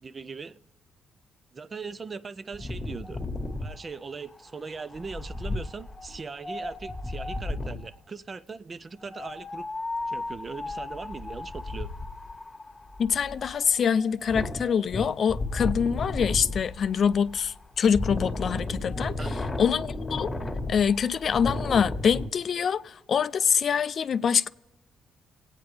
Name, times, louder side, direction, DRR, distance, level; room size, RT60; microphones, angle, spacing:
voice 1, 0.0-0.6 1.5-3.2 3.6-9.7 10.1-11.9 19.2-19.3, right 4 dB, 35° right, 0.4 m, -39 dB
Wind, 2.5-8.0 9.0-22.3, left 2 dB, 15° left, 1.4 m, -34 dB
voice 2, 13.0-19.2 19.6-20.3 20.7-24.5, left 7 dB, 55° left, 0.4 m, -25 dB
25.5 x 8.9 x 3.4 m
cardioid pair, 90°, 0 cm